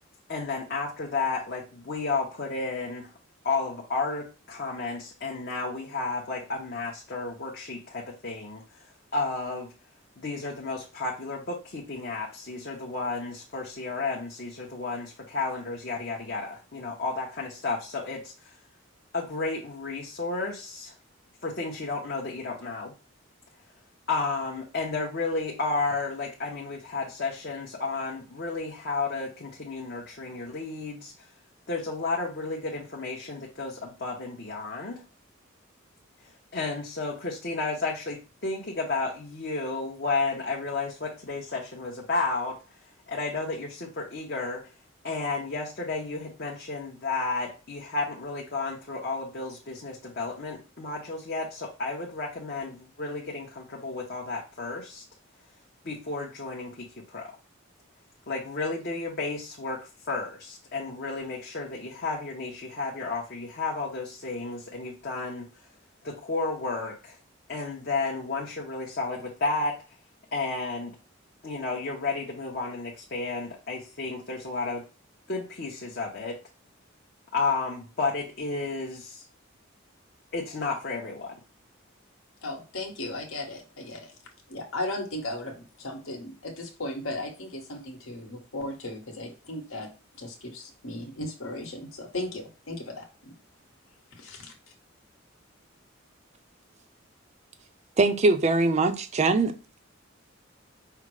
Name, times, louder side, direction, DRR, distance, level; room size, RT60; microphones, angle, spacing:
voice 1, 0.3-3.1 3.4-8.6 9.1-9.7 10.2-18.5 19.1-20.9 21.4-22.9 24.1-31.1 31.7-35.0 36.5-42.6 43.1-44.7 45.0-55.0 55.8-57.3 58.3-65.5 66.0-67.2 67.5-69.8 70.3-71.0 71.4-74.9 75.3-76.4 77.3-79.2 80.3-81.3, left 3 dB, 50° left, 0.8 m, -32 dB
voice 2, 82.4-84.1 84.5-89.9 90.1-93.3 94.1-94.5, left 1 dB, 80° left, 1.3 m, -36 dB
voice 3, 98.0-99.6, right 3 dB, 35° right, 0.4 m, -22 dB
5.6 x 2.0 x 4.7 m
head